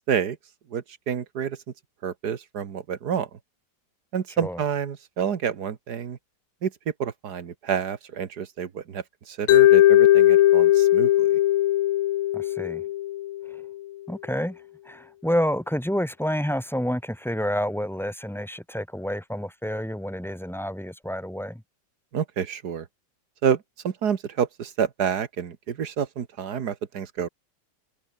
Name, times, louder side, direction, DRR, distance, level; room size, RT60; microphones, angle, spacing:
voice 1, 0.7-1.6 2.0-3.4 4.1-6.2 6.6-6.7 7.0-11.4 22.1-22.9 23.4-27.3, right 7 dB, 60° right, 1.9 m, -28 dB
Mallet percussion, 9.5-13.6, left 14 dB, 75° left, 0.7 m, -18 dB
voice 2, 12.3-12.8 14.1-14.6 14.8-21.6, equal, ahead, 1.5 m, -29 dB
omnidirectional pair, 2.0 m